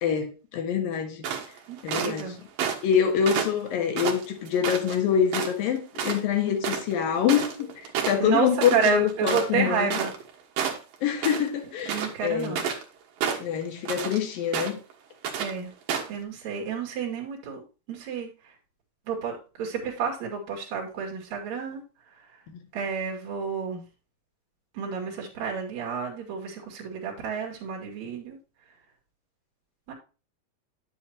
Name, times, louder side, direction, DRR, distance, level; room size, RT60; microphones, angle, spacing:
voice 1, 0.0-1.2 1.8-2.3 2.8-7.7 8.1-10.0 11.0-12.6 13.4-14.8, left 8 dB, 80° left, 3.3 m, -25 dB
sound 1, 1.2-2.2 2.6-2.9 3.3-5.0 5.3-5.7 6.0-6.2 6.5-10.3 10.6-11.5 11.8-12.9 13.2-14.2 14.5-14.9 15.2-15.5 15.9-16.2, right 7 dB, 80° right, 3.2 m, -30 dB
voice 2, 1.7-2.4 8.2-10.1 11.9-12.6 15.4-15.7 16.1-17.6 17.9-18.3 19.1-21.8 22.7-23.8 24.7-28.4 29.9-30.0, right 6 dB, 55° right, 3.2 m, -30 dB
10.0 x 7.8 x 2.9 m
omnidirectional pair, 4.0 m